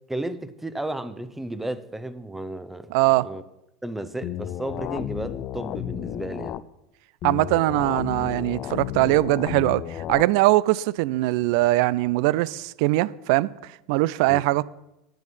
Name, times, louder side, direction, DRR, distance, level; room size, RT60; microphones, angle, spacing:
voice 1, 0.1-3.4 3.8-6.6 14.3-14.4, right 1 dB, 5° right, 0.8 m, -33 dB
voice 2, 2.9-3.3 7.2-13.5 13.9-14.6, right 18 dB, 60° right, 0.4 m, -21 dB
sound 1, 4.2-6.6 7.2-10.2, left 12 dB, 45° left, 0.5 m, -32 dB
9.1 x 9.0 x 5.5 m
hypercardioid pair, 80°, 3 cm